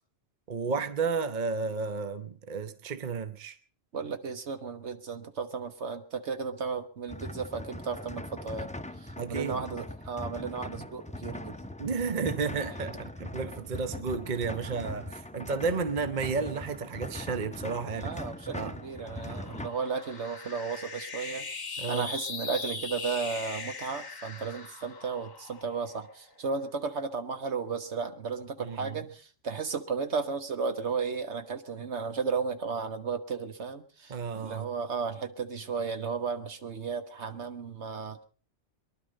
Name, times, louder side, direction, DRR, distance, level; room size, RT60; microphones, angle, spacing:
voice 1, 0.5-3.6 9.2-9.8 11.8-18.1 18.5-18.8 19.3-19.6 21.8-22.1 28.6-29.0 34.1-34.7, right 5 dB, 40° right, 1.0 m, -32 dB
voice 2, 3.9-8.7 9.0-11.6 18.0-38.2, right 5 dB, 65° right, 1.6 m, -34 dB
sound 1, 7.1-19.7, left 1 dB, 10° left, 0.4 m, -41 dB
sound 2, 18.3-26.8, left 4 dB, 40° left, 1.3 m, -41 dB
23.0 x 11.5 x 5.2 m
omnidirectional pair, 1.3 m